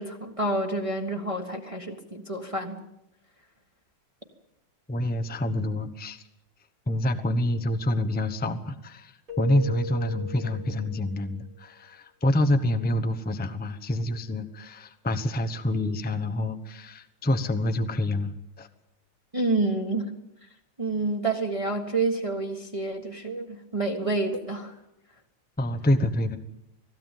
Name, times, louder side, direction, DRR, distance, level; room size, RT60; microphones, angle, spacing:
voice 1, 0.0-2.8 19.3-20.1 20.8-24.7, right 2 dB, 20° right, 2 dB, 1.4 m, -28 dB
voice 2, 4.9-6.2 6.9-18.7 25.6-26.4, left 1 dB, 5° left, 9 dB, 0.7 m, -27 dB
Keyboard (musical), 9.3-11.3, left 2 dB, 50° right, 2.5 m, -38 dB
20.0 x 16.5 x 9.1 m, 0.86 s
omnidirectional pair, 1.9 m